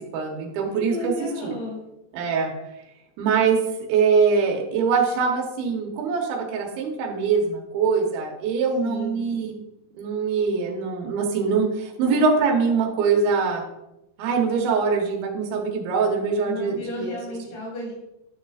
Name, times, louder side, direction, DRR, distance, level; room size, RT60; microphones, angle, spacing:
voice 1, 0.1-1.5 2.1-2.5 3.2-3.6 3.9-9.6 10.0-13.6 14.2-17.2, right 5 dB, 75° right, 0 dB, 2.9 m, -23 dB
voice 2, 0.7-1.8 8.8-9.2 16.4-17.9, left 2 dB, 80° left, -4 dB, 5.0 m, -33 dB
11.0 x 6.7 x 2.4 m, 0.90 s
omnidirectional pair, 4.5 m